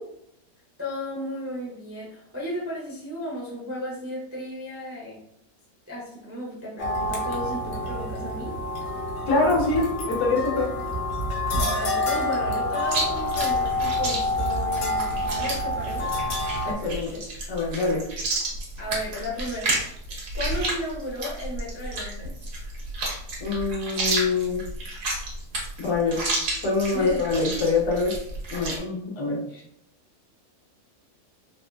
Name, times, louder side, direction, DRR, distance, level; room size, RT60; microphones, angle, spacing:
voice 1, 0.8-5.2 5.9-8.6 11.5-16.1 18.8-19.8 20.3-22.5 26.9-27.3, equal, 25° right, -6 dB, 0.3 m, -34 dB
sound 1, 6.8-16.7, left 1 dB, 60° left, 1.0 m, -27 dB
voice 2, 9.3-10.7 16.7-17.2 17.5-18.0 23.4-24.6 25.8-26.3 26.6-28.1 28.5-29.6, left 3 dB, 80° left, -3 dB, 1.4 m, -25 dB
Chewing mastication, 12.8-28.8, right 2 dB, 85° right, 1.4 m, -31 dB
3.6 x 2.3 x 2.2 m, 0.73 s
omnidirectional pair, 1.6 m